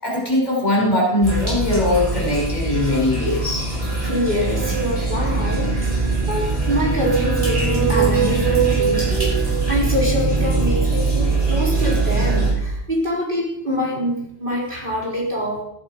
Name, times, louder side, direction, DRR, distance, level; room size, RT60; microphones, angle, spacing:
voice 1, 0.0-3.6, left 1 dB, 35° left, -3 dB, 6.0 m, -20 dB
sound 1, 1.2-12.5, right 3 dB, 30° right, 6.0 m, -22 dB
sound 2, 3.9-5.5 6.4-10.3, right 11 dB, 80° right, 1.0 m, -25 dB
voice 2, 4.0-5.9 6.3-15.6, left 1 dB, 45° right, -3 dB, 4.3 m, -25 dB
15.0 x 12.5 x 5.2 m, 0.76 s
omnidirectional pair, 1.2 m